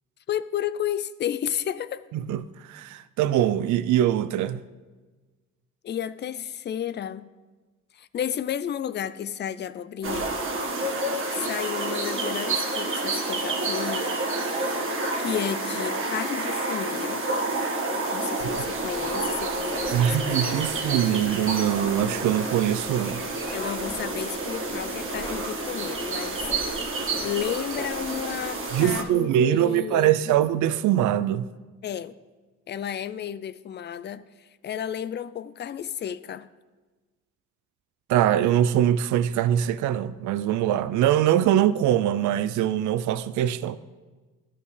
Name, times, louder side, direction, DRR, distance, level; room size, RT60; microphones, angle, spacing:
voice 1, 0.3-2.1 5.8-7.3 7.9-10.3 11.3-14.1 14.4-14.8 15.2-17.3 18.1-20.7 23.5-26.4 27.2-30.4 31.8-32.2 32.7-36.5, left 9 dB, 35° left, 0.4 m, -32 dB
voice 2, 2.7-4.6 18.3-18.4 19.9-23.2 28.7-31.5 38.1-43.8, right 11 dB, 75° right, 0.5 m, -23 dB
sound 1, 10.0-29.0, right 2 dB, 45° right, 1.4 m, -29 dB
sound 2, 18.4-29.1, left 1 dB, 5° left, 0.7 m, -45 dB
13.0 x 5.4 x 3.2 m
cardioid pair, 90°, 30 cm